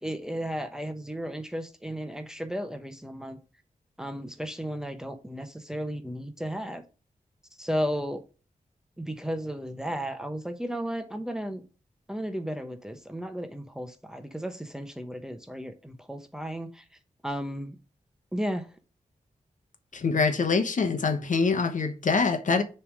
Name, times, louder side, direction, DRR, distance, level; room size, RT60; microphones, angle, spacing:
voice 1, 0.0-3.4 4.0-6.8 7.6-8.2 9.0-11.6 12.1-16.8 17.2-17.8 18.3-18.7, equal, 5° right, 1.0 m, -34 dB
voice 2, 19.9-22.6, left 4 dB, 65° left, 1.0 m, -24 dB
6.9 x 3.4 x 6.2 m
cardioid pair, 65°, 14 cm